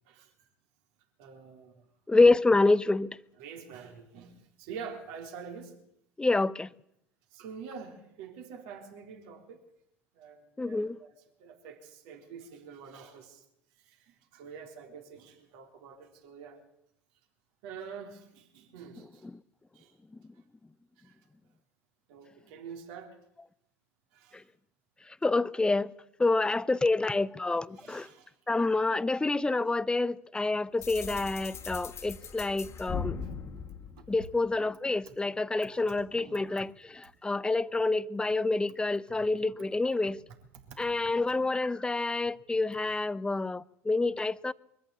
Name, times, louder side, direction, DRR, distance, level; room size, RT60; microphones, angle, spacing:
voice 1, 1.2-1.9 3.4-5.8 7.3-9.6 10.1-13.4 13.8-16.6 17.6-19.3 19.7-20.0 21.0-21.2 22.1-23.2 24.1-24.5 27.7-28.4 33.5-33.7 35.1-35.2 35.9-36.4 39.1-39.3 40.6-40.9, right 6 dB, 65° right, 3.9 m, -47 dB
voice 2, 2.1-3.2 6.2-6.7 10.6-11.0 25.2-25.9 26.2-28.1 28.5-33.2 34.1-40.2 40.8-44.5, left 3 dB, 10° left, 0.7 m, -27 dB
sound 1, 30.8-34.7, left 6 dB, 35° left, 2.0 m, -39 dB
23.0 x 14.0 x 8.5 m
hypercardioid pair, 75°, 8 cm